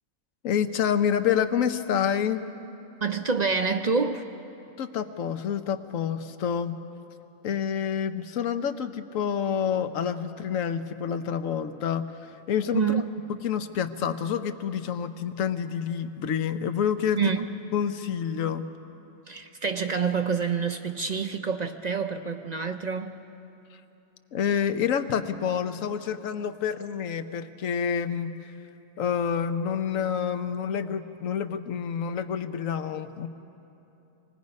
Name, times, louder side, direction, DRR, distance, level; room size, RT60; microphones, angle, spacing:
voice 1, 0.4-2.4 4.8-6.8 7.4-13.0 13.3-17.2 17.7-18.6 24.3-28.5 29.0-33.3, left 8 dB, 80° left, 10 dB, 1.2 m, -28 dB
voice 2, 3.0-4.3 12.7-13.0 17.2-17.5 19.3-23.3, right 5 dB, 45° right, 7 dB, 0.5 m, -27 dB
25.5 x 19.0 x 5.3 m, 2.9 s
omnidirectional pair, 1.4 m